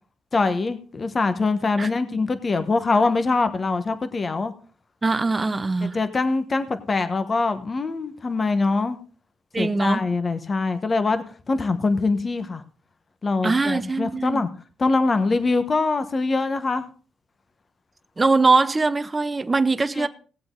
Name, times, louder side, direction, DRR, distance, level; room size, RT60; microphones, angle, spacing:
voice 1, 0.3-4.5 5.8-9.0 9.6-12.6 13.2-14.5 14.8-16.8 20.0-20.1, left 3 dB, 30° left, 1.2 m, -23 dB
voice 2, 5.0-6.0 9.5-10.1 13.4-14.5 18.2-20.1, right 3 dB, 25° right, 0.6 m, -22 dB
18.0 x 7.8 x 3.8 m
cardioid pair, 90°, 0 cm